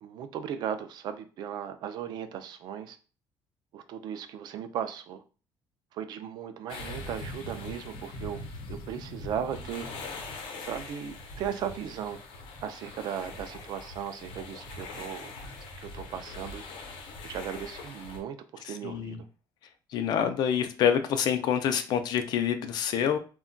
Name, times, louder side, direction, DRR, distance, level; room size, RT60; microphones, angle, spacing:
voice 1, 0.0-3.0 3.7-5.2 5.9-8.4 8.7-9.9 10.6-12.2 12.6-15.3 15.8-16.6 17.3-19.3, right 8 dB, 55° right, 0.3 m, -37 dB
sound 1, 6.7-18.2, left 2 dB, 85° left, 0.7 m, -42 dB
voice 2, 18.7-19.2 19.9-23.2, left 8 dB, 55° left, 0.4 m, -27 dB
2.2 x 2.2 x 3.7 m
cardioid pair, 175°, 8 cm